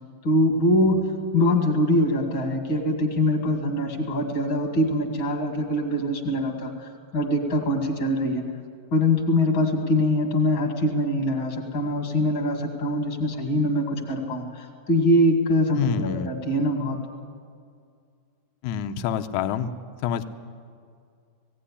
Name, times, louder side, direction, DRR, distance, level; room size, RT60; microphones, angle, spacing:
voice 1, 0.2-1.0 1.3-6.7 7.1-8.4 8.9-17.0, left 1 dB, 35° left, 4 dB, 2.5 m, -23 dB
voice 2, 15.8-16.3 18.6-19.7 20.0-20.3, left 8 dB, 75° left, 8 dB, 1.9 m, -27 dB
18.5 x 17.0 x 10.0 m, 2.2 s
omnidirectional pair, 4.4 m